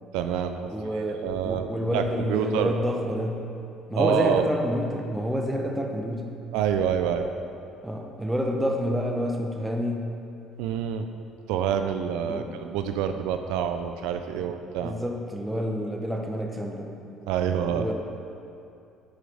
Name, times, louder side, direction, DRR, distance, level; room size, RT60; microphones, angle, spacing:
voice 1, 0.1-0.7 1.2-1.7 1.9-2.7 3.9-4.4 6.5-7.3 10.6-11.1 11.5-15.0 17.3-17.9, right 8 dB, 85° right, 7 dB, 0.3 m, -27 dB
voice 2, 0.7-3.4 3.9-6.3 7.8-10.1 12.2-12.5 14.3-14.5 14.8-16.9 17.7-17.9, equal, 5° right, 1 dB, 0.8 m, -28 dB
10.0 x 4.6 x 3.5 m, 2.6 s
cardioid pair, 105°, 0 cm